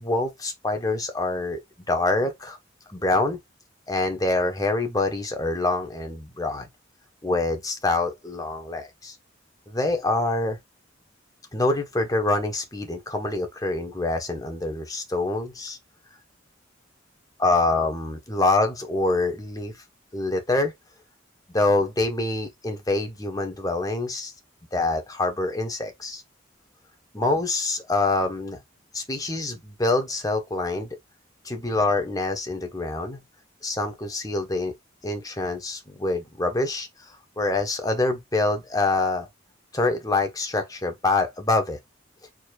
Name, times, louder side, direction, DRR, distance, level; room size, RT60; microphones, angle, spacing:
voice 1, 0.0-1.6 1.9-2.6 2.9-3.4 3.9-6.7 7.2-9.1 9.7-10.6 11.5-15.8 17.4-19.7 20.1-20.7 21.5-24.3 24.7-26.2 27.1-28.6 28.9-30.9 31.4-33.2 33.6-34.7 35.0-36.9 37.4-39.3 39.7-41.8, left 2 dB, 20° left, 1.4 m, -25 dB
4.6 x 4.4 x 2.5 m
head